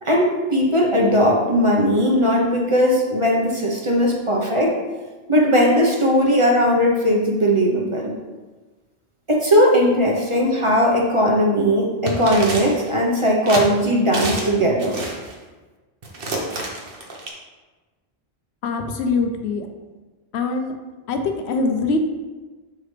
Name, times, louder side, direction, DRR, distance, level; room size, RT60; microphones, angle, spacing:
voice 1, 0.0-4.8 5.3-8.1 9.3-15.0, equal, 30° right, -2 dB, 0.9 m, -18 dB
sound 1, 12.1-12.9 13.5-13.7 14.1-14.5 14.8-15.3 16.0-17.3, right 2 dB, 60° right, 1.2 m, -28 dB
voice 2, 18.6-19.7 20.3-20.7 21.1-22.0, left 4 dB, 80° left, 6 dB, 0.9 m, -23 dB
6.7 x 4.8 x 3.3 m, 1.3 s
omnidirectional pair, 1.1 m